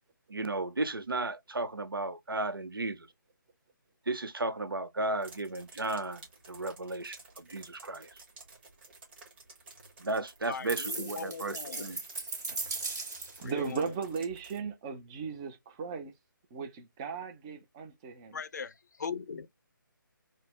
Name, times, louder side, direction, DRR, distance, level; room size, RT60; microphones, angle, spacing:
voice 1, 0.3-3.1 4.1-8.2 10.0-12.0, right 2 dB, 80° right, 0.7 m, -34 dB
sound 1, 5.2-14.6, right 3 dB, 30° right, 1.3 m, -53 dB
voice 2, 10.5-12.0 13.4-13.9 18.3-19.5, left 6 dB, 55° left, 0.5 m, -40 dB
sound 2, 10.7-13.5, right 3 dB, 50° right, 1.6 m, -37 dB
voice 3, 13.4-16.1 16.5-18.4, right 5 dB, 15° right, 0.4 m, -37 dB
4.0 x 2.0 x 3.3 m
figure-of-eight pair, 150°, 11 cm